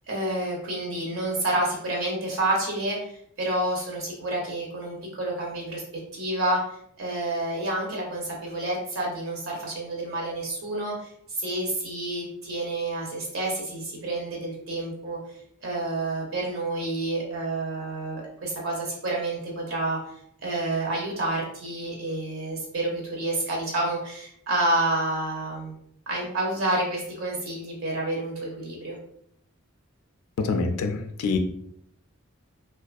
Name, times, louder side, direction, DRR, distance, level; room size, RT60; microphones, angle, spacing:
voice 1, 0.1-5.8 6.1-6.6 7.0-11.1 11.4-15.2 15.6-20.0 20.4-25.7 26.1-29.0, right 2 dB, 65° right, -2 dB, 0.6 m, -29 dB
voice 2, 30.4-31.4, left 4 dB, 90° left, 6 dB, 0.3 m, -26 dB
2.5 x 2.3 x 2.3 m, 0.70 s
head